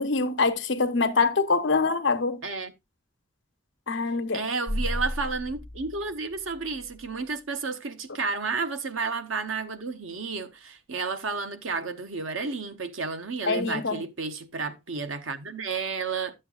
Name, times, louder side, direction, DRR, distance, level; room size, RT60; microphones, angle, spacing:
voice 1, 0.0-2.4 3.9-4.4 13.4-14.0, left 4 dB, 65° left, 0.9 m, -24 dB
voice 2, 4.1-16.3, right 4 dB, 90° right, 0.9 m, -32 dB
sound 1, 4.7-7.1, equal, 10° right, 5.0 m, -34 dB
12.0 x 7.7 x 2.4 m
head